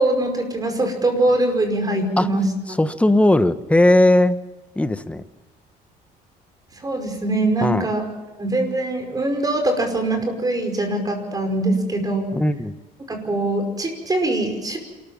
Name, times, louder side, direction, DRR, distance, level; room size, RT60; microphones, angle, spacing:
voice 1, 0.0-2.8 6.8-8.1 8.4-12.3 13.1-14.8, right 2 dB, 20° right, 5 dB, 5.4 m, -22 dB
voice 2, 2.8-4.4 4.8-5.2 7.6-7.9 12.3-12.7, left 1 dB, 5° left, 11 dB, 1.0 m, -17 dB
27.5 x 14.0 x 7.3 m, 1.2 s
cardioid pair, 110°, 17 cm